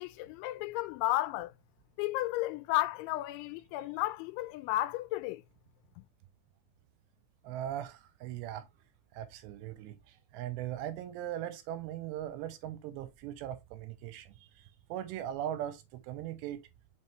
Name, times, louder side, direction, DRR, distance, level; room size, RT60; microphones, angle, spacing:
voice 1, 0.0-1.5 2.0-5.4, left 17 dB, 85° left, 2.9 m, -33 dB
voice 2, 7.4-8.7 9.1-16.7, right 11 dB, 80° right, 2.6 m, -40 dB
5.5 x 5.4 x 3.1 m
omnidirectional pair, 5.3 m